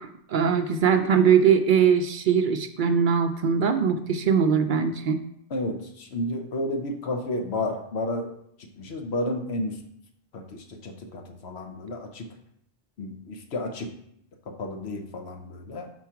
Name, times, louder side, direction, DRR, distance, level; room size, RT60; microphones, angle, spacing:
voice 1, 0.0-5.2, right 7 dB, 60° right, 7 dB, 0.6 m, -21 dB
voice 2, 5.5-8.3 8.8-9.8 10.3-12.3 13.0-13.9 14.5-15.9, left 1 dB, 85° left, 4 dB, 1.1 m, -32 dB
4.7 x 4.4 x 5.7 m, 0.73 s
omnidirectional pair, 1.1 m